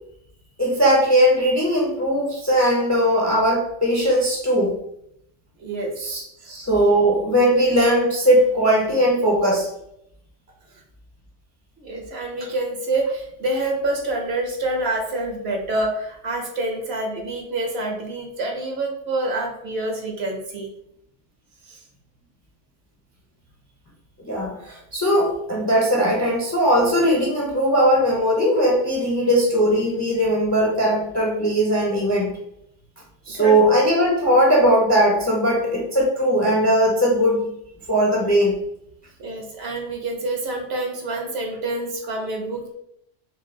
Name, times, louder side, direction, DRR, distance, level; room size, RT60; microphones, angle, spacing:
voice 1, 0.6-4.7 6.0-9.7 24.2-32.3 33.3-37.5 37.9-38.5, equal, 20° left, -2 dB, 0.5 m, -19 dB
voice 2, 5.6-5.9 11.8-20.7 21.7-21.8 33.3-33.6 39.2-42.8, right 2 dB, 60° right, 2 dB, 1.0 m, -27 dB
4.4 x 2.3 x 3.7 m, 0.76 s
omnidirectional pair, 1.3 m